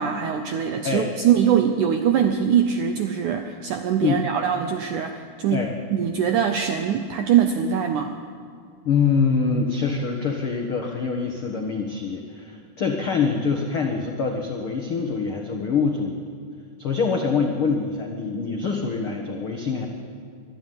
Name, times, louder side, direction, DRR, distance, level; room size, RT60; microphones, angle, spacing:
voice 1, 0.0-8.2, right 8 dB, 80° right, 6 dB, 1.8 m, -22 dB
voice 2, 8.8-16.3 16.8-19.9, left 5 dB, 90° left, 3 dB, 1.1 m, -25 dB
24.0 x 13.0 x 9.3 m, 2.2 s
omnidirectional pair, 4.7 m